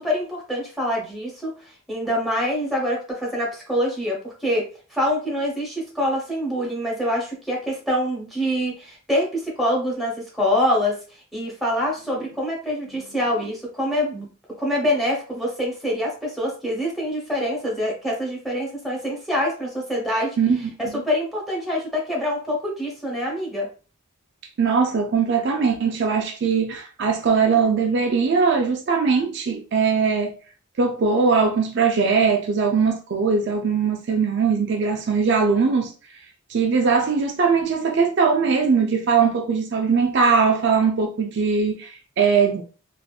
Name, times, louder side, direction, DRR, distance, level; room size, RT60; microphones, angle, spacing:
voice 1, 0.0-11.0 11.3-14.3 14.6-20.4 20.8-23.7, left 1 dB, ahead, 0.9 m, -25 dB
voice 2, 24.6-30.4 30.8-35.9 36.5-42.6, right 5 dB, 55° right, 0.4 m, -20 dB
3.4 x 2.5 x 2.3 m
head